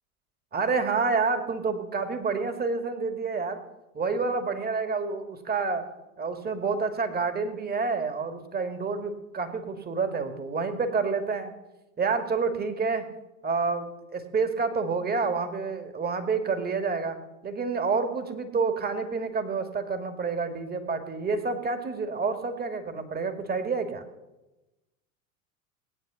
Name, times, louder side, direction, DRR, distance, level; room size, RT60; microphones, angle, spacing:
voice 1, 0.5-3.6 3.9-5.9 6.2-11.5 12.0-13.1 13.4-17.2 17.4-24.0, right 4 dB, 25° right, 7 dB, 2.2 m, -28 dB
20.5 x 9.1 x 7.0 m, 1.0 s
hypercardioid pair, 80°, 41 cm